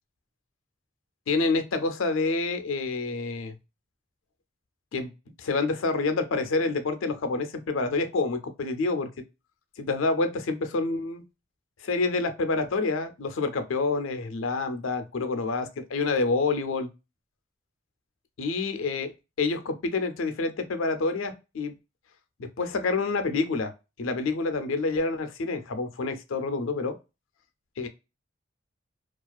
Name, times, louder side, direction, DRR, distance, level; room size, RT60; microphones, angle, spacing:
voice 1, 1.3-3.6 4.9-5.1 5.4-9.1 9.8-11.2 11.8-16.9 18.4-19.1 19.4-21.7 22.4-23.7 24.0-27.0 27.8-27.9, left 3 dB, 85° left, 9 dB, 0.5 m, -27 dB
2.4 x 2.3 x 2.2 m, 0.28 s
head